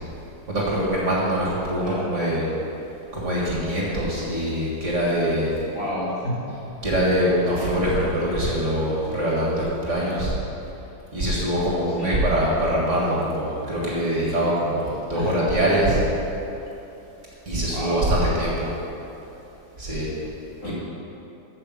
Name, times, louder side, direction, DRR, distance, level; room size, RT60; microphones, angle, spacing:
voice 1, 0.5-2.4 3.1-5.5 6.8-10.4 11.1-16.1 17.5-18.7 19.8-20.1 20.6-20.7, equal, 40° right, -5 dB, 2.1 m, -23 dB
voice 2, 1.8-2.4 5.7-6.4 12.0-12.2 15.1-15.4 17.7-18.0 20.6-20.7, equal, 40° left, -7 dB, 2.7 m, -30 dB
8.3 x 7.0 x 7.4 m, 3.0 s
omnidirectional pair, 2.1 m